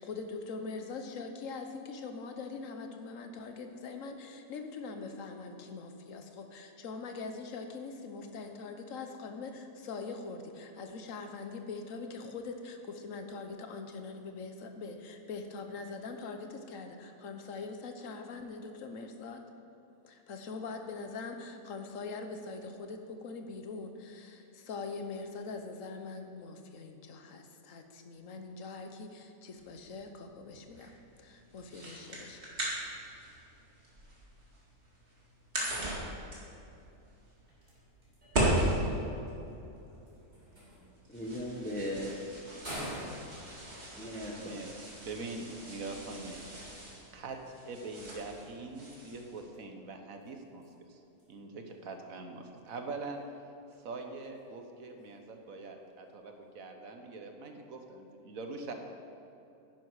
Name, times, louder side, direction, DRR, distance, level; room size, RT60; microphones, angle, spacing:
voice 1, 0.0-19.4 20.0-30.9 31.2-32.5, left 4 dB, 65° left, 6 dB, 1.3 m, -42 dB
sound 1, 29.6-49.4, right 1 dB, 45° right, 2.6 m, -38 dB
sound 2, 37.2-56.7, equal, 30° right, 3.4 m, -52 dB
voice 2, 38.5-39.1 41.1-42.1 44.0-44.6, equal, 5° left, -1 dB, 1.0 m, -38 dB
voice 3, 44.4-46.4 47.1-47.4 47.6-51.0 51.3-53.2 53.8-58.7, right 3 dB, 65° right, 4 dB, 1.5 m, -43 dB
10.5 x 10.5 x 4.8 m, 2.8 s
omnidirectional pair, 1.6 m